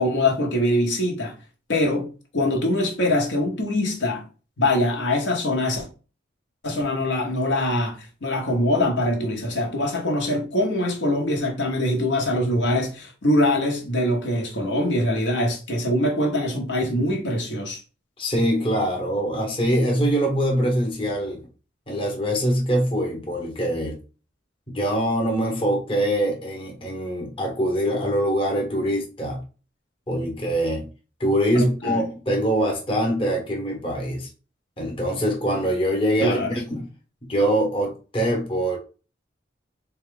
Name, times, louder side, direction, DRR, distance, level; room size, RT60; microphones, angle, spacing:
voice 1, 0.0-1.3 1.7-4.3 4.6-5.9 6.6-17.8 31.6-32.0 36.2-36.8, left 1 dB, 70° left, 0.9 m, -23 dB
voice 2, 18.2-21.4 21.9-23.9 24.7-29.4 30.1-30.9 31.2-34.3 34.8-36.9 37.3-38.8, equal, 30° left, 0.9 m, -23 dB
3.8 x 2.3 x 3.6 m
head